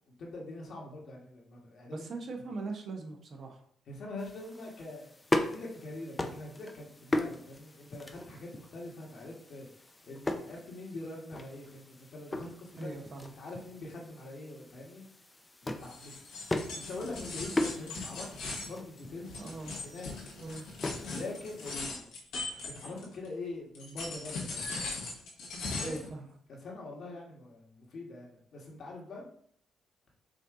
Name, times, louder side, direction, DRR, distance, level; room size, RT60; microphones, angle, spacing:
voice 1, 0.1-2.1 3.9-12.9 13.4-15.0 15.6-16.1 16.7-19.4 19.8-20.1 21.1-22.0 22.5-24.8 25.7-26.0 26.5-29.2, left 2 dB, 60° left, -2 dB, 1.4 m, -44 dB
voice 2, 1.9-3.6 12.8-13.3 19.4-19.8 20.3-20.7 25.7-26.3, right 3 dB, 55° right, 3 dB, 0.8 m, -40 dB
sound 1, 4.2-21.8, left 1 dB, 20° left, 0.5 m, -39 dB
sound 2, 15.8-23.3 23.7-26.1, left 3 dB, 85° left, 1.3 m, -39 dB
5.1 x 2.7 x 3.6 m, 0.62 s
cardioid pair, 90°, 0 cm